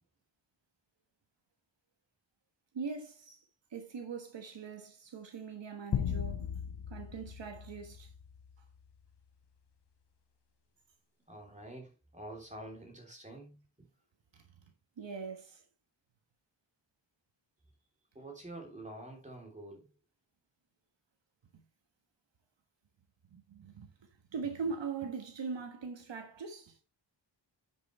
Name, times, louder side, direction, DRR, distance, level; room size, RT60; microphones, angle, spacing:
voice 1, 2.7-3.4 3.7-6.5 6.9-8.1 14.3-14.4 15.0-15.6 23.3-23.9 24.3-26.8, right 5 dB, 80° right, 1.5 m, -41 dB
sound 1, 5.9-8.6, left 8 dB, 65° left, 0.8 m, -37 dB
voice 2, 11.3-13.9 18.1-19.9, right 1 dB, 15° right, 3.2 m, -47 dB
9.8 x 6.4 x 3.2 m
wide cardioid pair, 155°, 43 cm